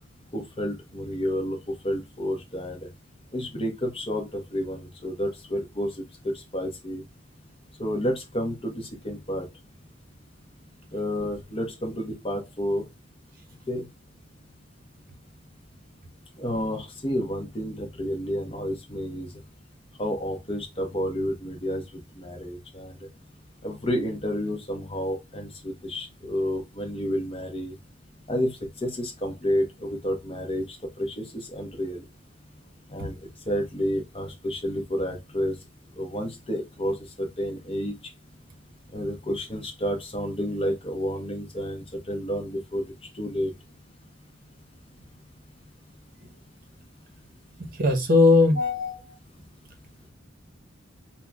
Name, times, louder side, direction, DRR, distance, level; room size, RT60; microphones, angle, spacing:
voice 1, 0.3-2.8 3.3-5.9 6.2-7.0 7.8-9.4 10.9-12.8 13.7-13.9 16.4-19.3 20.0-21.8 22.1-23.0 23.6-27.8 28.3-32.0 32.9-33.1 33.5-35.5 36.0-37.9 38.9-42.8 43.1-43.5, equal, 25° left, 0.9 m, -30 dB
voice 2, 47.6-49.0, left 3 dB, 45° right, 0.8 m, -19 dB
5.6 x 2.2 x 2.3 m
head